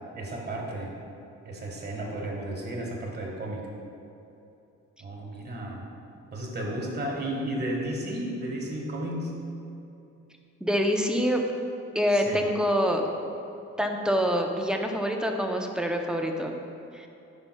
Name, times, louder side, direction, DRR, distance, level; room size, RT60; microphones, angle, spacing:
voice 1, 0.1-0.9 1.4-3.6 5.0-5.8 6.3-9.3 12.1-12.5, right 1 dB, 35° right, -1 dB, 1.5 m, -33 dB
voice 2, 10.6-11.4 11.9-13.0 13.8-16.6 16.9-17.1, equal, 5° right, 2 dB, 0.6 m, -26 dB
10.0 x 5.6 x 2.3 m, 2.8 s
cardioid pair, 90°, 30 cm